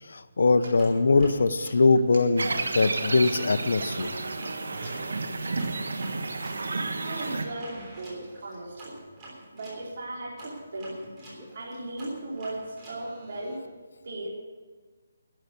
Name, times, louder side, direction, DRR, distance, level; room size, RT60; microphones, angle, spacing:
voice 1, 0.1-2.5 2.7-4.1, left 3 dB, 70° left, 10 dB, 0.8 m, -22 dB
sound 1, 0.8-3.4 4.0-9.8 10.4-13.6, right 1 dB, 15° right, 3.3 m, -47 dB
sound 2, 2.4-7.4, right 3 dB, 80° right, 1.4 m, -31 dB
voice 2, 4.7-5.2 7.0-9.0 9.5-10.9 11.5-13.6 14.0-14.3, right 2 dB, 55° right, -4 dB, 4.1 m, -37 dB
12.5 x 8.0 x 8.4 m, 1.4 s
hypercardioid pair, 165°, 0 cm